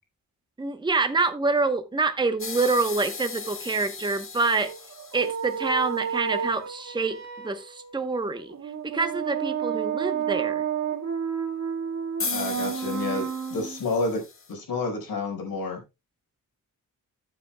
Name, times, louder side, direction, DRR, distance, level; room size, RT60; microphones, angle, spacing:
voice 1, 0.6-4.7 5.1-7.2 7.4-8.5 8.8-10.6, right 3 dB, 15° right, 0.9 m, -26 dB
sound 1, 2.4-5.9 12.2-14.5, left 4 dB, 40° left, 1.6 m, -37 dB
sound 2, 4.4-13.8, right 8 dB, 55° right, 1.8 m, -31 dB
voice 2, 12.3-14.2 14.5-15.8, left 3 dB, 85° left, 4.7 m, -29 dB
14.5 x 7.9 x 2.2 m
wide cardioid pair, 150°, 34 cm